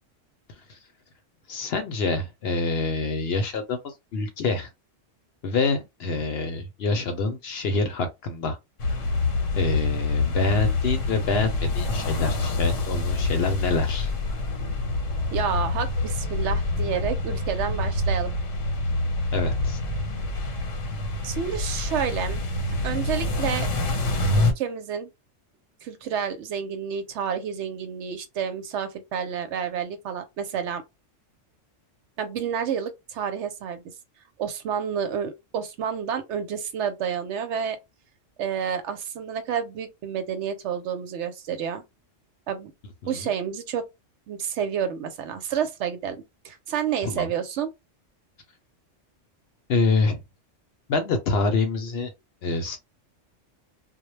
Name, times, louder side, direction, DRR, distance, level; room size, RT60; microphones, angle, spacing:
voice 1, 1.5-4.7 5.4-8.6 8.9-9.1 9.5-14.1 19.3-19.8 43.0-43.3 47.0-47.3 49.7-50.2 50.9-52.1 52.4-52.8, left 3 dB, 65° left, 0.7 m, -26 dB
sound 1, 8.8-24.5, left 2 dB, 85° left, 1.0 m, -26 dB
voice 2, 15.3-18.3 21.2-22.4 22.8-23.7 24.6-25.1 25.8-30.8 32.2-33.8 34.4-37.8 38.4-41.8 42.5-42.7 43.1-43.9 44.3-47.7, right 8 dB, 70° right, 0.8 m, -29 dB
2.2 x 2.1 x 3.0 m
omnidirectional pair, 1.3 m